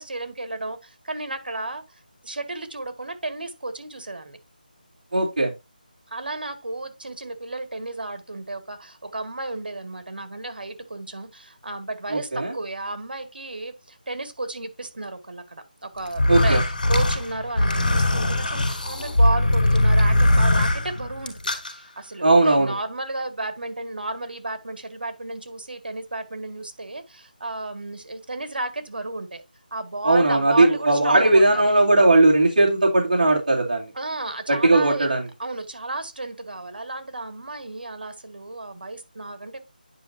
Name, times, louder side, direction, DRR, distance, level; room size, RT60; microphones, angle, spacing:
voice 1, 0.0-1.8 2.2-4.4 6.1-16.6 16.9-29.4 29.7-31.7 33.9-35.1 35.4-39.6, right 2 dB, 75° right, 2.0 m, -33 dB
voice 2, 5.1-5.5 12.1-12.5 16.3-16.6 22.2-22.7 30.0-33.9 34.5-35.2, right 2 dB, 55° right, 2.5 m, -18 dB
sound 1, 16.1-21.7, left 1 dB, 60° left, 4.2 m, -20 dB
10.0 x 5.4 x 2.8 m
figure-of-eight pair, 175°, 5 cm